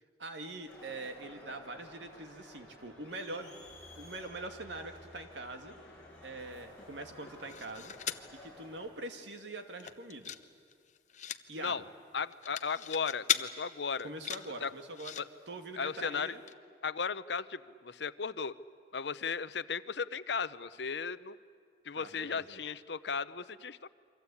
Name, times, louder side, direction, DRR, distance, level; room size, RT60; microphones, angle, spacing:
voice 1, 0.2-3.7 3.9-5.7 6.2-7.9 8.4-10.3 11.5-11.9 14.0-15.1 15.5-16.4 21.9-22.5, right 2 dB, 80° right, 6 dB, 2.3 m, -43 dB
Crowd, 0.7-8.9, left 1 dB, 5° left, 7.0 m, -53 dB
sound 1, 7.2-8.3 8.8-8.9 9.1-9.4 9.7-10.4 10.7-11.4 12.2-13.4 14.0-15.2 16.1-16.2 16.5-16.6, left 9 dB, 40° left, 0.8 m, -37 dB
voice 2, 12.1-14.1 14.6-14.7 15.2-15.3 15.8-16.3 16.8-18.5 18.9-21.4 21.8-23.9, left 5 dB, 75° left, 15 dB, 0.7 m, -36 dB
28.5 x 24.5 x 8.5 m, 2.1 s
head